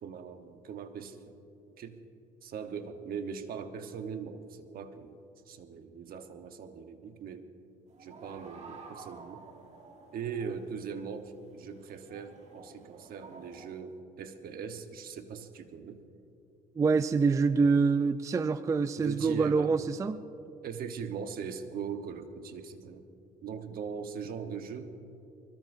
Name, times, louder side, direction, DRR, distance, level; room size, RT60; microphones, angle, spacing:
voice 1, 0.0-1.4 1.8-2.0 2.4-7.5 8.0-9.5 10.1-16.0 19.0-19.8 20.6-23.0 23.4-24.9, right 6 dB, 60° right, 7 dB, 1.1 m, -40 dB
sound 1, 7.9-13.7, right 4 dB, 40° right, 1.8 m, -51 dB
voice 2, 16.8-20.2, right 4 dB, 20° right, 13 dB, 0.3 m, -26 dB
24.0 x 21.5 x 2.7 m, 2.8 s
cardioid pair, 110°, 17 cm